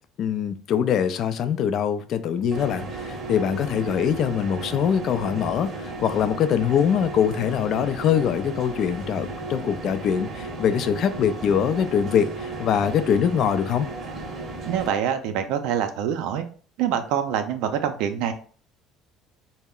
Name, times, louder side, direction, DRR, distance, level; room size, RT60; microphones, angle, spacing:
voice 1, 0.2-13.9, left 8 dB, 55° left, 0.3 m, -23 dB
sound 1, 2.5-14.9, right 2 dB, 40° right, 0.7 m, -35 dB
voice 2, 14.7-16.4 16.8-18.3, right 9 dB, 80° right, 0.4 m, -25 dB
2.2 x 2.0 x 3.6 m
supercardioid pair, 100°, 0 cm